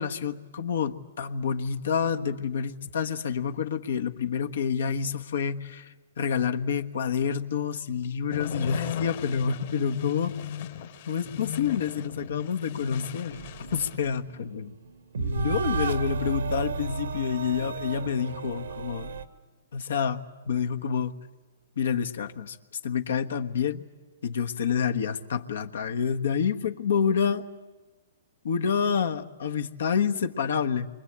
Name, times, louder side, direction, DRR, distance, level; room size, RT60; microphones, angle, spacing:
voice 1, 0.0-10.4 11.1-13.4 13.7-14.7 15.2-19.1 19.7-21.1 21.8-22.6 22.8-23.8 24.2-27.4 28.4-30.9, left 7 dB, 75° left, 7 dB, 1.3 m, -28 dB
sound 1, 8.3-14.0, left 8 dB, 55° left, 2.2 m, -36 dB
sound 2, 13.3-19.2, right 5 dB, 85° right, 1.5 m, -33 dB
27.5 x 24.5 x 8.8 m, 1.3 s
hypercardioid pair, 150°, 0 cm